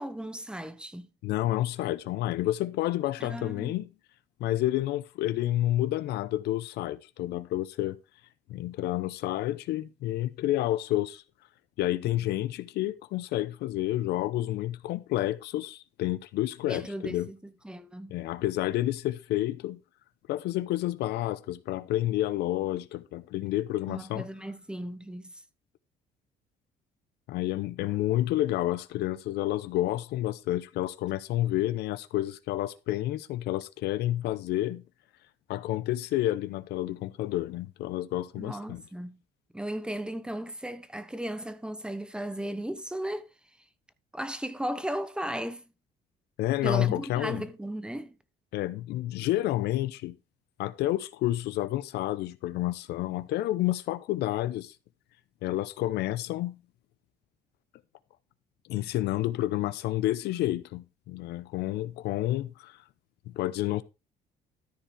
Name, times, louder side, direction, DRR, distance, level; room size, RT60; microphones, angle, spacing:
voice 1, 0.0-1.1 3.2-3.7 16.7-18.2 23.9-25.4 38.3-39.2 39.5-43.3 44.1-45.6 46.6-48.2, right 1 dB, 5° right, 1.0 m, -36 dB
voice 2, 1.2-3.9 4.4-8.0 8.5-11.2 11.8-17.3 18.1-19.8 20.3-24.3 27.3-34.8 35.5-38.8 46.4-47.4 48.5-50.2 50.6-54.7 55.4-56.6 58.7-62.8 63.3-63.8, left 15 dB, 80° left, 0.8 m, -29 dB
13.5 x 4.6 x 4.9 m
cardioid pair, 110°, 17 cm